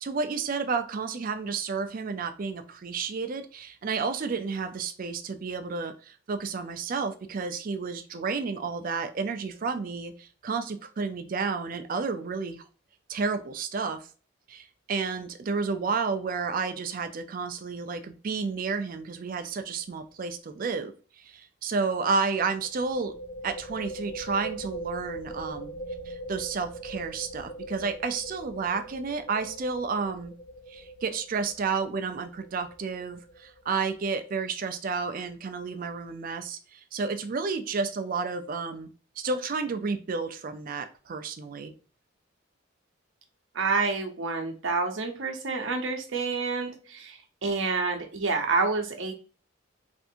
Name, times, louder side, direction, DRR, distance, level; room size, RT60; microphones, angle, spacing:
voice 1, 0.0-12.6 13.1-14.1 14.5-23.1 23.4-25.7 26.1-30.3 30.7-38.9 39.2-41.7, right 4 dB, 45° right, 8 dB, 0.4 m, -31 dB
sound 1, 19.5-19.8 20.0-20.1 22.6-34.0, right 2 dB, 50° left, 0.6 m, -41 dB
voice 2, 43.5-49.1, right 4 dB, 70° right, 4 dB, 0.7 m, -28 dB
3.4 x 2.5 x 2.7 m, 0.37 s
head